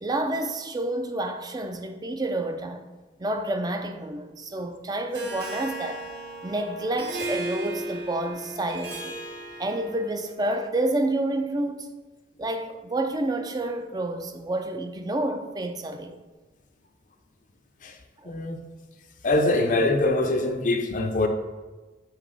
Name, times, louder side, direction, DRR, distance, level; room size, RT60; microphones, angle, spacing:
voice 1, 0.0-2.9 3.2-6.1 6.4-9.2 9.6-11.9 12.4-16.1 18.2-18.3, right 1 dB, 20° right, 0.5 m, -29 dB
Harp, 5.1-10.2, right 1 dB, 60° right, 1.1 m, -35 dB
voice 2, 18.2-18.6 19.2-21.3, left 2 dB, 45° left, 0.5 m, -23 dB
7.3 x 3.0 x 4.8 m
head